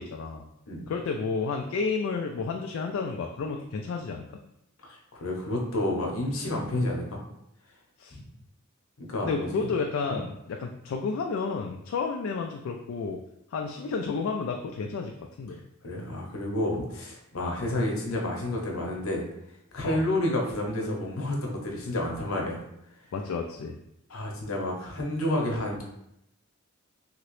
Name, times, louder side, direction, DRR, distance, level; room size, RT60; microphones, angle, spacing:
voice 1, 0.0-0.5 0.9-4.3 8.0-8.2 9.2-13.2 13.5-15.1 15.4-15.6 17.4-17.6 19.8-20.0 23.1-23.8, left 4 dB, 70° left, 3 dB, 0.3 m, -31 dB
voice 2, 4.9-7.2 9.0-9.7 10.1-10.2 15.8-19.2 19.7-22.6 24.1-25.8, left 1 dB, 85° left, -1 dB, 0.8 m, -30 dB
2.9 x 2.8 x 3.1 m, 0.81 s
head